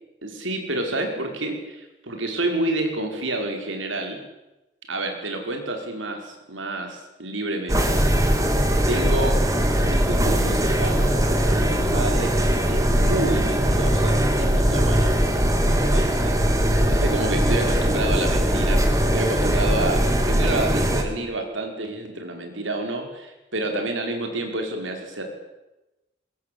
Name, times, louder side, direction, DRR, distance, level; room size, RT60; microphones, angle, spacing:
voice 1, 0.2-4.2 4.9-8.2 8.9-9.4 9.8-12.4 12.7-15.2 15.6-25.2, right 2 dB, 90° right, 3 dB, 5.5 m, -29 dB
sound 1, 7.7-21.0, equal, 15° right, 2.8 m, -20 dB
22.5 x 21.5 x 8.7 m, 1.0 s
head